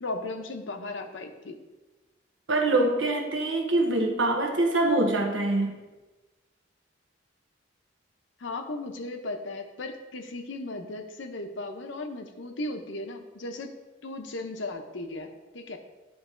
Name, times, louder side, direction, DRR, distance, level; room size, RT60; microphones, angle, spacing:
voice 1, 0.0-1.6 8.4-13.7 14.0-15.8, left 2 dB, 85° left, 5 dB, 0.8 m, -36 dB
voice 2, 2.5-5.8, right 2 dB, 90° right, 2 dB, 1.1 m, -24 dB
10.5 x 4.0 x 3.8 m, 1.2 s
head